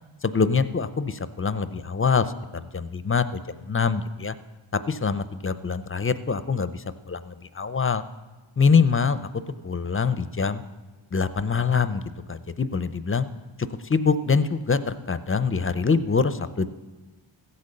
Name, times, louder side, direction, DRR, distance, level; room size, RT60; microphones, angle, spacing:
voice 1, 0.2-2.3 2.7-3.4 3.7-4.3 4.7-8.0 8.6-9.3 9.6-10.6 11.1-12.0 12.3-13.3 13.6-16.7, left 5 dB, 25° left, 13 dB, 0.5 m, -24 dB
15.0 x 8.4 x 6.6 m, 1.2 s
wide cardioid pair, 65°, 49 cm